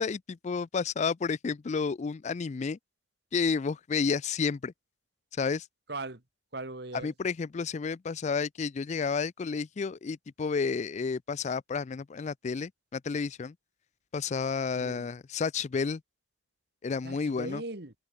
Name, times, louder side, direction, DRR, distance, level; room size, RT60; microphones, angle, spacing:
voice 1, 0.0-2.8 3.3-4.7 5.4-5.7 7.0-13.5 14.1-16.0 16.8-17.6, left 5 dB, 40° left, 0.4 m, -31 dB
voice 2, 5.9-6.2 6.5-7.1 14.7-15.1 17.0-17.9, right 2 dB, 65° right, 2.4 m, -39 dB
head